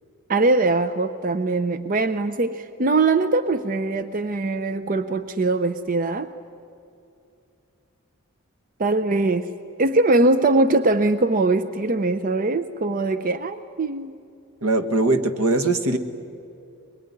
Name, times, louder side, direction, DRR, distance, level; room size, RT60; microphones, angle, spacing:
voice 1, 0.3-6.3 8.8-9.5 9.8-14.1, right 2 dB, 40° right, 12 dB, 0.6 m, -21 dB
voice 2, 14.6-16.0, right 2 dB, 80° right, 9 dB, 1.6 m, -21 dB
22.5 x 22.5 x 9.8 m, 2.6 s
head